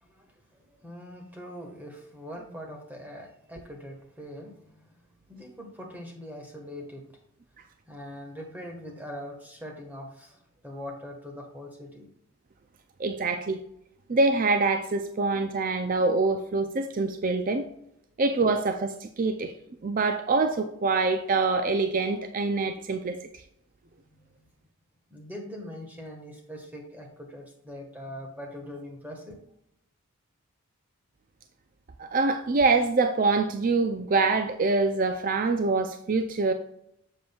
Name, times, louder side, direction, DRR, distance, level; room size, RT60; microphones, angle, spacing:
voice 1, 0.0-7.0 7.9-12.1 24.1-24.4 25.1-29.4, equal, 10° right, 1 dB, 1.3 m, -42 dB
voice 2, 13.0-13.6 14.1-17.7 18.2-19.5 19.8-23.2 32.0-36.5, right 3 dB, 40° right, 7 dB, 0.4 m, -25 dB
7.6 x 7.2 x 2.3 m, 0.76 s
head